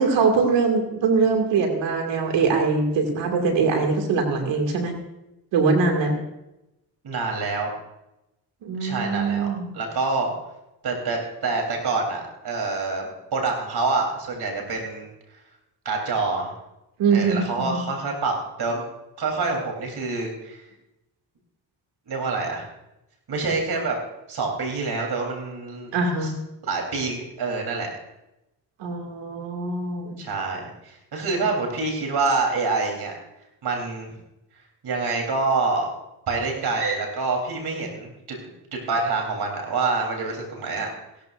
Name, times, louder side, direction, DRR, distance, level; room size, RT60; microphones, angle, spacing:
voice 1, 0.0-4.9 5.5-6.2 8.6-9.7 17.0-17.9 25.9-26.3 28.8-30.2, right 4 dB, 90° right, 3 dB, 2.5 m, -22 dB
voice 2, 7.0-7.7 8.8-10.3 10.8-15.1 15.3-15.4 15.9-16.5 17.1-18.8 19.2-20.6 22.1-22.7 23.3-24.0 24.3-25.9 26.2-26.3 26.6-27.9 30.2-33.1 33.6-34.1 34.8-35.9 36.3-38.4 38.7-40.9, right 3 dB, 60° right, 1 dB, 3.8 m, -26 dB
16.5 x 13.5 x 2.6 m, 0.91 s
cardioid pair, 65°, 43 cm